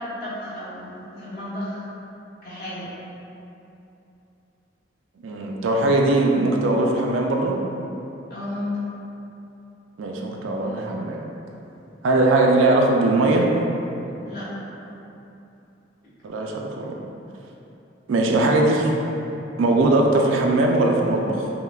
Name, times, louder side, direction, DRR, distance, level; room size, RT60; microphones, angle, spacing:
voice 1, 0.0-1.8 2.4-2.9 8.3-8.8 14.2-14.7, left 1 dB, 55° left, -11 dB, 1.2 m, -33 dB
voice 2, 5.2-7.6 10.0-11.2 12.0-13.5 16.2-17.0 18.1-18.9 19.6-21.5, right 2 dB, 75° right, 0 dB, 0.4 m, -20 dB
5.4 x 2.1 x 2.3 m, 2.9 s
head